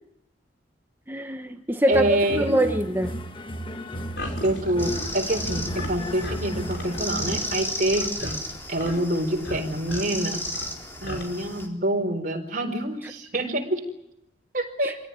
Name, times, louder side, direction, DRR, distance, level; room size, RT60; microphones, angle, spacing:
voice 1, 1.1-3.1 14.8-14.9, right 1 dB, 10° right, 5 dB, 1.3 m, -24 dB
sound 1, 1.9-7.7, equal, 30° left, 1.5 m, -34 dB
voice 2, 1.9-2.6 4.4-8.4 8.7-10.5 11.0-13.9 14.5-15.0, right 1 dB, 50° right, 4 dB, 4.5 m, -26 dB
sound 2, 4.1-11.2, left 1 dB, 70° left, 5.8 m, -38 dB
sound 3, 4.8-11.7, left 1 dB, 15° left, 4.1 m, -34 dB
26.5 x 17.5 x 9.9 m, 0.83 s
head